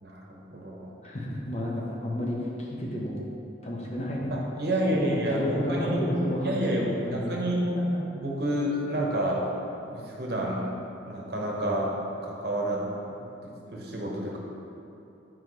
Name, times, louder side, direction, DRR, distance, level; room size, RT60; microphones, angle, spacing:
voice 1, 0.0-1.0 4.6-6.0 6.4-7.6 8.2-9.4 9.8-10.7 11.1-11.9 12.2-12.8 13.4-14.4, right 1 dB, 55° right, -2 dB, 1.0 m, -29 dB
voice 2, 1.0-3.1 3.6-4.4 4.9-7.2 7.6-7.7, equal, 35° left, -3 dB, 0.9 m, -31 dB
8.3 x 4.6 x 3.1 m, 2.8 s
head